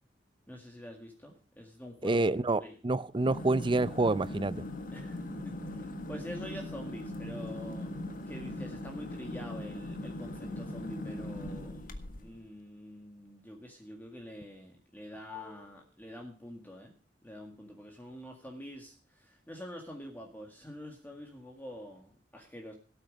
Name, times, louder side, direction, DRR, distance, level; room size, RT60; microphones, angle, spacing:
voice 1, 0.5-2.2 2.6-2.8 4.9-7.9 8.3-11.8 12.2-16.9 17.2-22.7, equal, 10° left, 2 dB, 1.9 m, -46 dB
voice 2, 2.0-4.6, right 2 dB, 25° right, 17 dB, 0.6 m, -28 dB
sound 1, 3.1-12.4, left 1 dB, 50° left, 1.6 m, -40 dB
18.0 x 8.7 x 5.2 m, 0.38 s
head